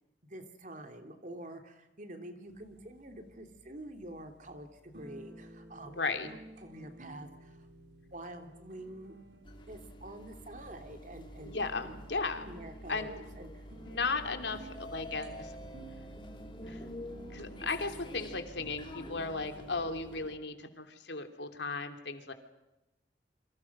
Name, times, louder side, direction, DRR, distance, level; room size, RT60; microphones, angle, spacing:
voice 1, 0.3-7.7 8.0-9.2 9.7-11.6 11.8-11.9 12.4-13.6, right 1 dB, 45° right, 6 dB, 3.1 m, -47 dB
sound 1, 2.5-19.7, right 1 dB, 75° right, 4.0 m, -54 dB
voice 2, 5.9-6.3 11.4-12.5 12.9-13.1 13.9-15.6 16.7-16.8 17.3-22.3, left 4 dB, 80° left, 7 dB, 3.0 m, -36 dB
sound 2, 9.4-20.4, equal, 25° left, 2.8 m, -48 dB
29.0 x 25.5 x 6.2 m, 0.96 s
head